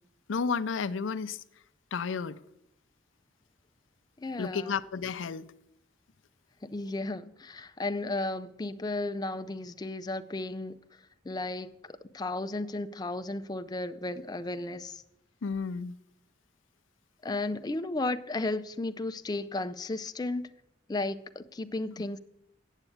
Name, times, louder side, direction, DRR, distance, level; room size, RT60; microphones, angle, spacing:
voice 1, 0.3-1.4 1.9-2.4 4.4-5.5 15.4-16.0, left 5 dB, 90° left, 0.5 m, -32 dB
voice 2, 4.2-4.7 6.6-10.8 11.2-15.0 17.2-20.5 20.9-22.2, left 2 dB, 20° left, 0.4 m, -34 dB
8.1 x 7.9 x 8.4 m
head